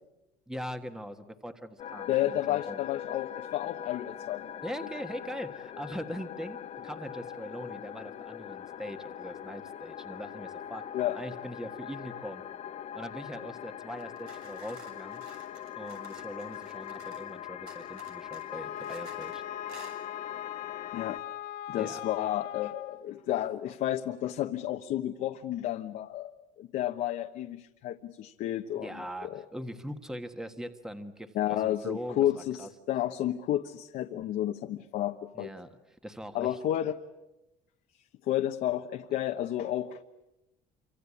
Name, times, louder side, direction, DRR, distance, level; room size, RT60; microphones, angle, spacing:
voice 1, 0.5-2.8 4.6-10.8 11.1-12.4 12.9-15.2 15.7-19.4 21.8-22.0 28.7-32.7 35.3-36.6, equal, 5° right, 7 dB, 1.5 m, -41 dB
sound 1, 1.8-21.2, left 10 dB, 45° left, 1.0 m, -42 dB
voice 2, 2.1-4.5 10.9-11.2 20.9-21.2 21.7-26.3 26.6-28.9 29.2-29.4 31.3-35.5 36.3-37.0 38.3-40.1, left 12 dB, 65° left, 4 dB, 1.1 m, -31 dB
sound 2, 14.0-17.3 17.7-19.4 19.7-20.0, right 6 dB, 80° right, 6.9 m, -54 dB
Wind instrument woodwind instrument, 18.5-23.1, left 12 dB, 80° left, 1.4 m, -40 dB
27.0 x 25.5 x 8.5 m, 0.96 s
cardioid pair, 140°, 16 cm